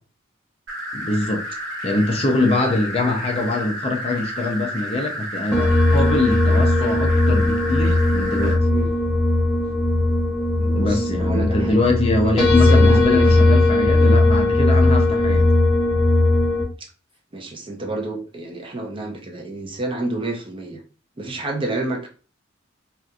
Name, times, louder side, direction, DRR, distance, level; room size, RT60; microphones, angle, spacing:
sound 1, 0.7-8.6, equal, 70° right, 0.8 m, -31 dB
voice 1, 0.9-1.4 1.8-8.6 10.7-15.5, left 2 dB, 30° left, 0.5 m, -23 dB
sound 2, 5.5-16.6, left 2 dB, ahead, 1.2 m, -18 dB
voice 2, 10.6-11.9 12.2-13.6 16.8-16.9 17.3-20.8 21.2-22.1, right 2 dB, 25° right, 0.6 m, -29 dB
2.8 x 2.4 x 2.3 m
head